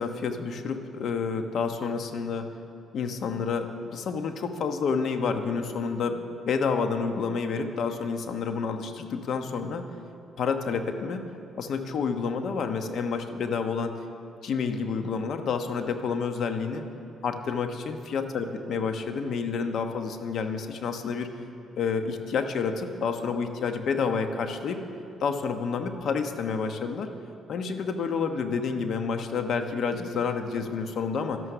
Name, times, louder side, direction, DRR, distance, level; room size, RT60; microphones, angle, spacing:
voice 1, 0.0-2.5 2.9-9.8 10.4-11.2 11.5-13.9 14.4-16.8 17.2-21.3 21.8-24.8 25.2-27.1 27.5-31.4, left 5 dB, 65° left, 7 dB, 1.1 m, -29 dB
12.5 x 11.0 x 6.8 m, 2.9 s
cardioid pair, 90°, 0 cm